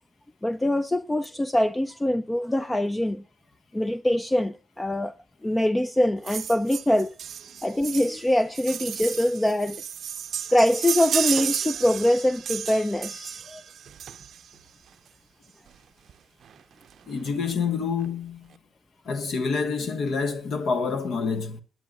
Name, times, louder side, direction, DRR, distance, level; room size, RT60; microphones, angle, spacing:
voice 1, 0.4-3.2 3.7-5.1 5.4-7.1 7.6-9.8 10.5-13.6, left 1 dB, 10° left, 0.4 m, -24 dB
sound 1, 6.2-14.6 15.7-15.8 16.1-16.2 16.4-16.6 16.9-17.5 18.0-18.1, right 9 dB, 60° right, 0.5 m, -33 dB
voice 2, 17.1-18.5 19.1-21.6, left 5 dB, 60° left, 1.2 m, -27 dB
18.5 x 9.5 x 2.3 m
cardioid pair, 90°, 0 cm